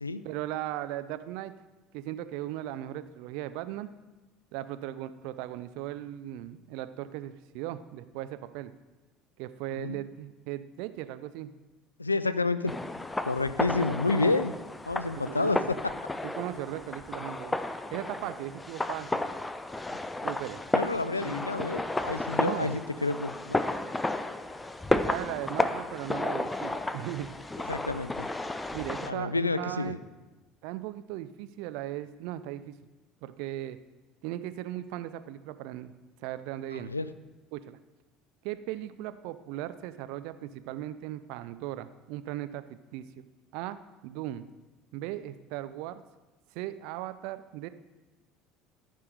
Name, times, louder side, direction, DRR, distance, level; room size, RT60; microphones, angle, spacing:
voice 1, 0.2-1.5 1.9-3.9 4.5-8.7 9.4-11.5 13.7-13.9 15.3-15.7 16.2-17.6 17.9-19.2 20.2-20.6 21.2-21.4 22.4-22.8 24.9-27.3 28.7-30.0 30.6-32.8 33.2-33.8 34.2-35.9 36.2-36.9 37.5-37.8 38.4-43.3 43.5-44.4 44.9-46.0 46.5-47.7, right 13 dB, 60° right, 12 dB, 0.5 m, -37 dB
voice 2, 12.0-12.7 13.2-14.5 14.9-15.9 20.7-23.6 27.7-28.3 29.1-30.0 36.7-37.1, left 3 dB, 85° left, 14 dB, 0.3 m, -29 dB
sound 1, 12.7-29.1, left 2 dB, 10° left, 0.5 m, -32 dB
14.0 x 5.6 x 4.9 m, 1.1 s
figure-of-eight pair, 65°, 0 cm